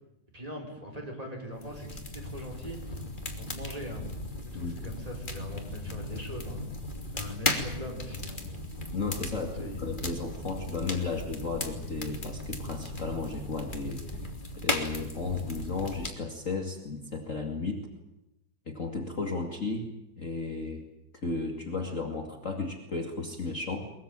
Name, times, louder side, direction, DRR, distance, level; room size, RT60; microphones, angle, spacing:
voice 1, 0.3-2.8 3.4-4.1 4.4-6.6 7.1-8.4 9.3-9.8, equal, 10° right, 1 dB, 5.0 m, -41 dB
sound 1, 1.6-16.1, left 2 dB, 15° left, 1.6 m, -36 dB
voice 2, 4.5-4.9 8.9-14.3 14.6-17.9 18.6-20.9 21.2-23.8, left 3 dB, 40° left, 3 dB, 1.1 m, -34 dB
23.0 x 22.5 x 8.9 m, 0.91 s
omnidirectional pair, 5.5 m